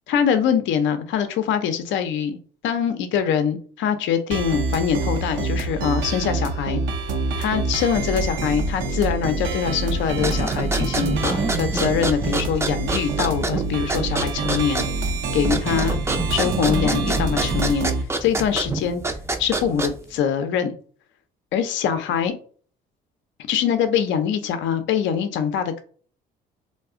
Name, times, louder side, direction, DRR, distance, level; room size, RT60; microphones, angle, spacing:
voice 1, 0.1-2.4 2.6-6.8 7.4-14.8 15.3-16.0 16.3-17.9 18.2-19.0 19.4-20.7 21.5-22.4 23.5-25.8, left 8 dB, 65° left, 9 dB, 0.5 m, -23 dB
sound 1, 4.3-18.0, right 3 dB, 65° right, 0.6 m, -26 dB
sound 2, 10.1-20.2, right 3 dB, 10° right, 0.5 m, -27 dB
2.3 x 2.1 x 3.6 m, 0.43 s
hypercardioid pair, 60°, 21 cm